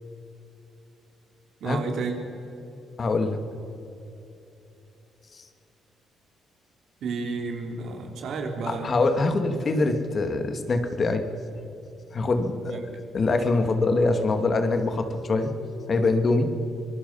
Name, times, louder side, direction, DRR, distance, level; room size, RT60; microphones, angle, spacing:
voice 1, 1.6-2.2 7.0-8.9 12.7-12.9, right 4 dB, 70° right, 3 dB, 3.6 m, -31 dB
voice 2, 3.0-3.4 8.7-11.2 12.1-12.8 13.1-16.5, left 3 dB, 40° left, 7 dB, 2.3 m, -24 dB
25.5 x 19.5 x 5.7 m, 2.9 s
cardioid pair, 90°, 0 cm